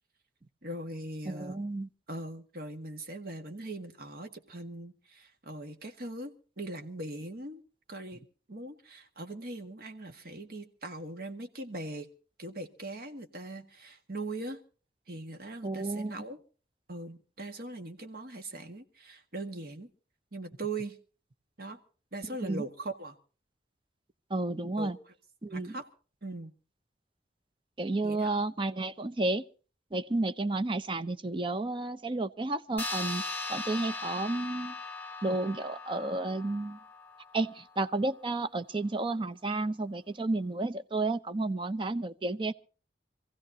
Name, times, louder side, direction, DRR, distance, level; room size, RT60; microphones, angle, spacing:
voice 1, 0.6-1.6 2.1-7.6 7.9-8.2 8.5-12.1 12.4-14.6 15.1-16.4 16.9-19.9 20.3-21.0 21.6-21.8 22.1-23.2 24.8-24.9 25.5-25.9 26.2-26.5 28.0-28.4, right 2 dB, 55° right, 1.8 m, -40 dB
voice 2, 1.3-1.9 15.6-16.1 22.4-22.6 24.3-25.0 25.4-25.7 27.8-29.4 29.9-33.2 33.5-34.7 35.2-36.8 37.3-42.5, right 2 dB, 30° right, 0.7 m, -31 dB
sound 1, 32.8-37.6, left 3 dB, 10° left, 1.7 m, -39 dB
26.0 x 15.5 x 2.8 m
head